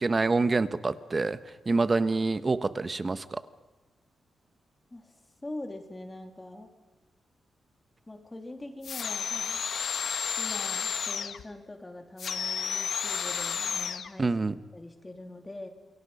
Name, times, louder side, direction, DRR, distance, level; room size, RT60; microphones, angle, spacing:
voice 1, 0.0-1.4 1.7-3.4 14.2-14.5, right 3 dB, 25° right, 12 dB, 1.1 m, -26 dB
voice 2, 4.9-6.7 8.1-9.7 10.3-14.3 14.7-15.7, left 2 dB, 15° left, 4 dB, 3.0 m, -43 dB
sound 1, 8.8-11.4 12.2-14.1, left 7 dB, 65° left, 1.4 m, -32 dB
28.0 x 23.5 x 5.6 m, 1.2 s
wide cardioid pair, 130°, 0 cm